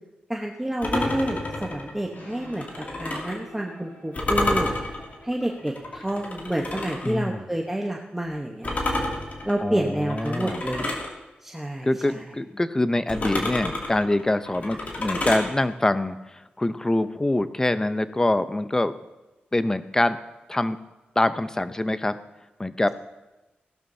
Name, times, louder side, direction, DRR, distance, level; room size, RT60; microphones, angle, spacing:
voice 1, 0.3-4.7 5.2-9.0 9.4-11.0 11.4-12.2, right 1 dB, 10° right, 0 dB, 1.0 m, -29 dB
sound 1, 0.8-3.4 4.1-7.1 8.6-11.1 13.1-15.5, left 2 dB, 50° left, 2.5 m, -29 dB
sound 2, 1.9-9.0, left 1 dB, 75° left, 5.1 m, -49 dB
voice 2, 7.0-7.4 9.6-10.6 11.8-18.9 19.5-20.2 20.5-20.8 21.2-22.2 22.6-22.9, left 1 dB, 15° left, 12 dB, 0.6 m, -24 dB
17.0 x 12.5 x 2.8 m, 1.1 s
wide cardioid pair, 95°, 4 cm